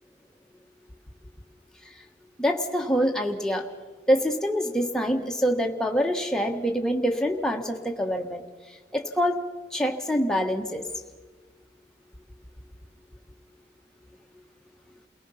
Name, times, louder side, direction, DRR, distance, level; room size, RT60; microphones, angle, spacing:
voice 1, 2.4-3.6 4.1-8.4 8.9-9.4 9.7-10.9, equal, 5° left, 2 dB, 1.4 m, -25 dB
28.5 x 18.0 x 5.7 m, 1.4 s
head